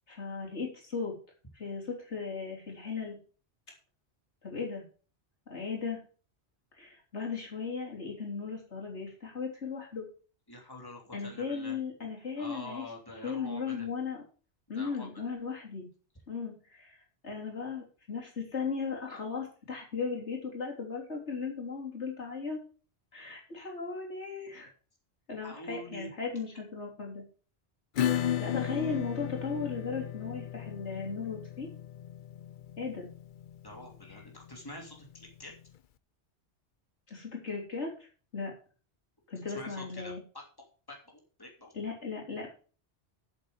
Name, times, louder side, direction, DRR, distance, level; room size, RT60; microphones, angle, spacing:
voice 1, 0.1-1.1 1.5-3.2 4.4-4.8 5.5-6.0 6.7-10.0 11.1-12.9 13.2-14.2 14.7-15.9 16.3-22.6 23.1-24.7 25.3-27.2 28.1-31.7 32.8-33.1 34.1-34.2 37.1-38.1 38.3-38.5 39.3-40.2 41.7-42.5, left 5 dB, 80° left, -1 dB, 3.5 m, -37 dB
voice 2, 10.5-11.8 12.4-13.9 14.7-15.1 25.4-26.1 33.6-35.5 39.5-40.4 40.9-41.7, left 1 dB, 20° left, 0 dB, 2.9 m, -46 dB
Acoustic guitar / Strum, 28.0-35.2, left 10 dB, 55° left, 0.7 m, -35 dB
8.0 x 7.9 x 7.0 m, 0.39 s
omnidirectional pair, 1.1 m